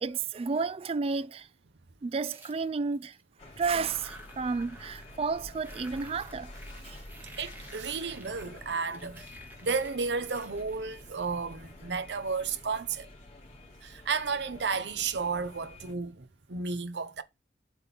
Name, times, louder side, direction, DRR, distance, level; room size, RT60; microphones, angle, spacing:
voice 1, 0.0-1.5 2.0-3.2 3.6-6.5 6.8-7.3, right 4 dB, 35° right, 0.3 m, -32 dB
sound 1, 2.2-3.2 3.6-5.2 5.4-11.8, right 1 dB, 10° right, 1.6 m, -52 dB
sound 2, 3.4-15.9, left 2 dB, 40° left, 2.6 m, -49 dB
voice 2, 7.4-9.3 9.6-13.1 13.8-17.2, right 5 dB, 75° right, 0.9 m, -32 dB
8.1 x 3.7 x 5.9 m
head